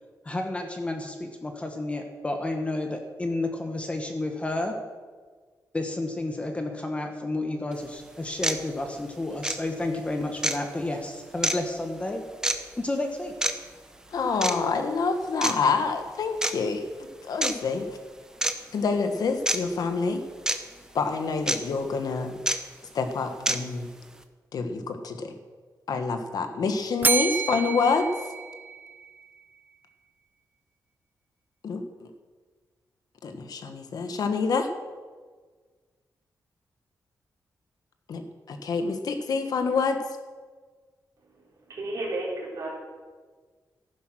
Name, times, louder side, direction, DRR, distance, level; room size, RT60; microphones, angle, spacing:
voice 1, 0.2-4.7 5.7-12.2 12.8-13.3, left 2 dB, 20° left, 4 dB, 1.3 m, -31 dB
sound 1, 7.7-7.8 8.4-8.6 9.4-9.6 10.4-10.6 11.4-11.6 12.4-12.6 13.4-13.5 14.4-14.6 15.4-15.5 16.4-16.5 17.4-17.5 18.4-18.5 19.5-19.6 20.5-20.6 21.5-21.6 22.5-22.6 23.5-23.6, right 1 dB, 10° right, 0.9 m, -25 dB
voice 2, 14.1-17.8 18.7-20.2 20.9-22.4 22.9-23.9 24.5-25.3 25.9-28.1 31.6-32.1 33.2-34.7 38.1-40.0, left 4 dB, 65° left, 7 dB, 1.4 m, -27 dB
Bell, 27.0-29.2, right 5 dB, 25° right, 0.4 m, -28 dB
voice 3, 41.7-42.7, right 2 dB, 50° right, -4 dB, 5.3 m, -32 dB
14.0 x 11.0 x 6.2 m, 1.5 s
wide cardioid pair, 160°, 7 cm